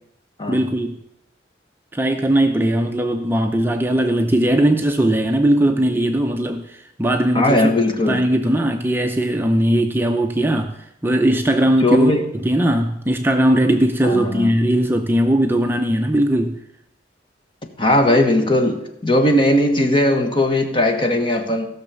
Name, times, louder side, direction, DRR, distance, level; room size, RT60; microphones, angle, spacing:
voice 1, 0.5-1.0 1.9-7.7 8.1-12.1 12.4-16.6, right 1 dB, 10° right, 4 dB, 0.6 m, -19 dB
voice 2, 7.3-8.2 11.8-12.2 14.0-14.5 17.8-21.7, left 1 dB, 30° left, 5 dB, 1.3 m, -18 dB
15.5 x 6.3 x 6.9 m, 0.79 s
head